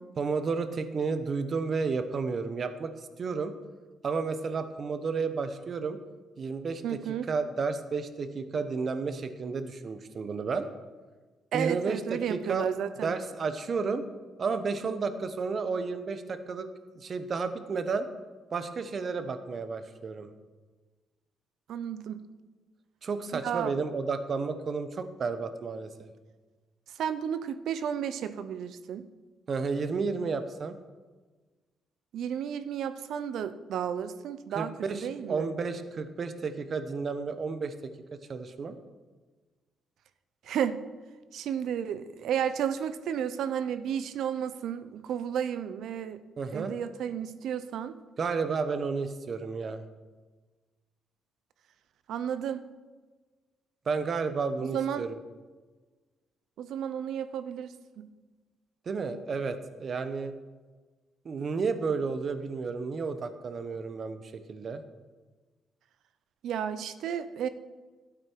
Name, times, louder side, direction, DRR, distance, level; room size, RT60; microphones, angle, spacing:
voice 1, 0.2-2.9 3.2-3.5 4.0-6.0 6.4-6.8 7.3-10.7 11.5-12.7 13.0-14.0 14.4-16.7 17.0-18.1 18.5-20.3 23.0-26.1 29.5-30.8 34.5-37.7 38.1-38.8 46.4-46.7 48.2-49.8 53.9-55.2 58.9-60.3 61.2-64.8, right 4 dB, 45° right, 10 dB, 1.0 m, -32 dB
voice 2, 6.8-7.3 11.5-13.1 21.7-22.3 23.4-23.7 27.0-29.1 32.1-34.8 35.0-35.5 40.4-40.8 41.3-46.2 46.5-48.0 52.1-52.6 54.7-55.1 56.6-58.1 66.4-67.5, right 9 dB, 75° right, 13 dB, 0.6 m, -32 dB
12.5 x 8.8 x 4.6 m, 1.3 s
cardioid pair, 90°, 0 cm